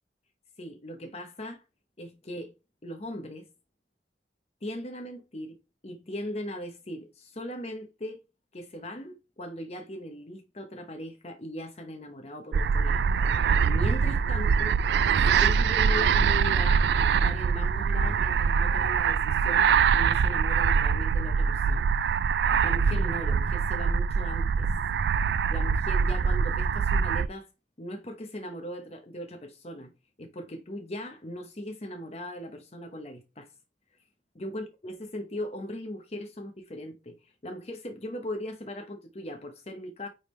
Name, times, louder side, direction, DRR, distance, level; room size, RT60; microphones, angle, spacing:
voice 1, 0.6-1.6 2.0-2.5 2.8-3.5 4.6-5.6 5.8-8.2 8.5-13.1 13.6-14.8 15.3-21.9 22.6-24.7 25.5-27.5 27.8-29.9 30.2-33.5 34.3-40.1, left 1 dB, 35° left, 0.8 m, -39 dB
sound 1, 12.5-27.3, right 6 dB, 75° right, 0.3 m, -24 dB
9.5 x 3.5 x 3.2 m
head